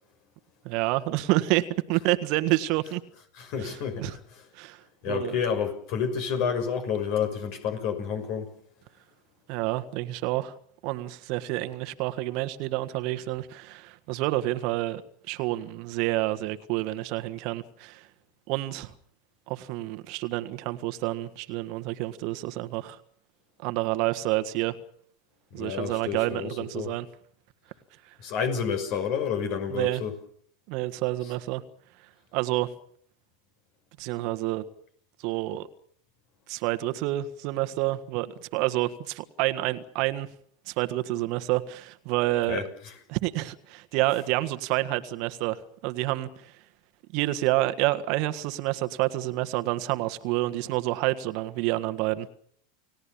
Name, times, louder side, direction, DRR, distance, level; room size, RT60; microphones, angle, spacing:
voice 1, 0.6-3.0 3.6-4.1 4.5-5.3 9.5-10.5 10.8-15.0 15.3-18.1 18.5-18.9 19.5-23.0 23.6-24.8 25.5-27.1 28.1-28.2 29.7-30.0 30.7-31.6 32.3-32.7 34.0-34.6 35.2-35.7 36.5-40.3 40.7-42.6 43.1-46.6 47.1-52.3, right 17 dB, 55° right, 1.6 m, -28 dB
voice 2, 3.4-4.2 5.0-8.5 25.6-26.5 26.7-26.9 28.2-30.1 42.5-42.6, left 7 dB, 55° left, 5.9 m, -29 dB
30.0 x 18.0 x 7.2 m
hypercardioid pair, 90°, 0 cm